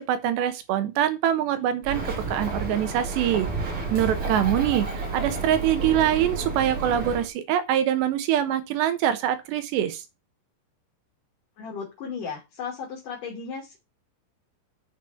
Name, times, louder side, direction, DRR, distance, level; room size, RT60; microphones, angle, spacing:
voice 1, 0.1-3.5 3.9-10.0, right 10 dB, 70° right, 3.0 m, -24 dB
Bird, 1.8-7.3, right 3 dB, 35° right, 2.7 m, -31 dB
voice 2, 11.6-13.8, left 6 dB, 50° left, 3.5 m, -35 dB
7.4 x 6.2 x 5.6 m
omnidirectional pair, 5.5 m